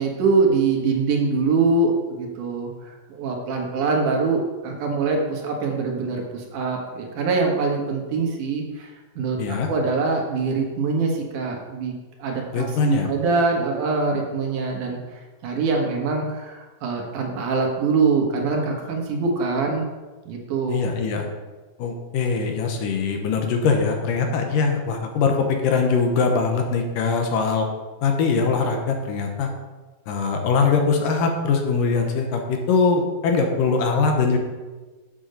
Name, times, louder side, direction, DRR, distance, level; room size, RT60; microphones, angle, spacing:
voice 1, 0.0-8.9 9.2-11.9 12.2-15.0 15.4-19.9 20.3-20.8, right 4 dB, 65° right, 1 dB, 2.6 m, -23 dB
voice 2, 9.4-9.7 12.5-13.1 20.7-21.3 21.8-27.7 28.0-29.5 30.1-34.4, left 4 dB, 75° left, 3 dB, 2.6 m, -22 dB
7.7 x 7.1 x 6.6 m, 1.2 s
omnidirectional pair, 4.1 m